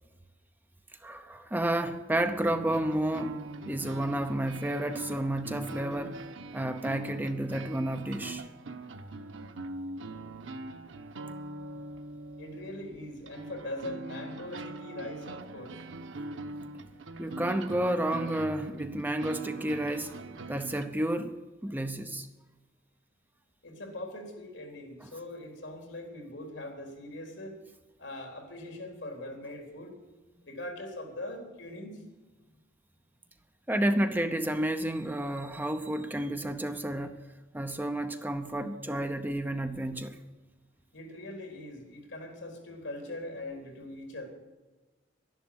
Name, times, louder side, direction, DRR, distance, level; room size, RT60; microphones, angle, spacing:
voice 1, 1.0-3.4 3.7-6.2 6.5-8.4 17.2-20.2 20.5-22.3 33.7-37.2 37.5-40.2, right 1 dB, 10° right, 0.7 m, -31 dB
sound 1, 2.2-20.9, right 2 dB, 85° right, 1.0 m, -42 dB
voice 2, 12.4-15.7 23.6-27.6 28.0-30.0 30.4-32.0 40.9-44.3, left 1 dB, 70° left, 3.8 m, -41 dB
12.0 x 11.5 x 8.8 m
head